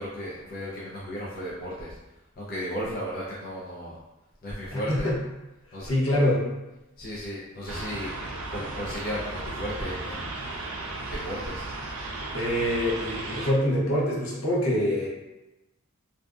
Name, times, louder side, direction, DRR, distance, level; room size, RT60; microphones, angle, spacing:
voice 1, 0.0-1.9 2.4-4.0 4.4-5.1 5.7-5.9 7.0-10.5 11.1-11.7, equal, 45° left, -6 dB, 0.4 m, -35 dB
voice 2, 4.7-5.2 5.8-6.5 12.3-15.1, left 1 dB, 75° left, -5 dB, 0.7 m, -25 dB
sound 1, 7.7-13.5, right 2 dB, 80° right, 0.4 m, -35 dB
2.5 x 2.2 x 2.3 m, 0.99 s
head